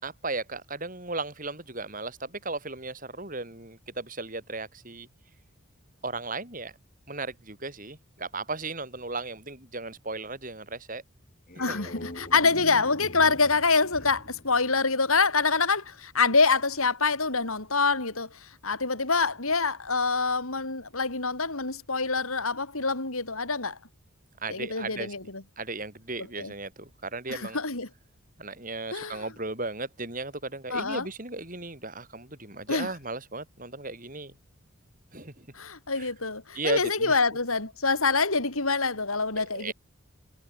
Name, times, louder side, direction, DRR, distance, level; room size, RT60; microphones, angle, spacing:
voice 1, 0.0-5.1 6.0-6.7 7.1-11.0 11.7-11.8 24.4-25.1 25.6-27.6 28.4-34.4 35.1-35.5 36.0-36.1 36.5-37.2 39.4-39.7, right 3 dB, 40° right, 6.0 m, -36 dB
sound 1, 11.3-15.5, left 1 dB, 40° left, 3.3 m, -44 dB
voice 2, 11.6-23.8 24.5-25.4 26.4-26.5 27.3-27.9 28.9-29.2 30.7-31.1 32.7-32.9 35.5-39.7, left 4 dB, 80° left, 5.0 m, -26 dB
head